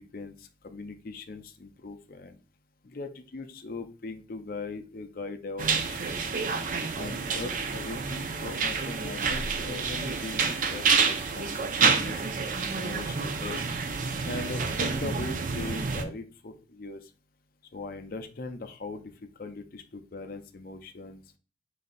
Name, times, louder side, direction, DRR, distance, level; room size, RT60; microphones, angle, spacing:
voice 1, 0.1-2.4 2.8-6.2 6.9-12.2 12.7-13.7 14.2-17.1 17.7-21.2, left 3 dB, 50° left, 8 dB, 0.5 m, -40 dB
sound 1, 5.6-16.1, right 5 dB, 45° right, 0.4 m, -28 dB
4.0 x 3.9 x 2.5 m, 0.37 s
head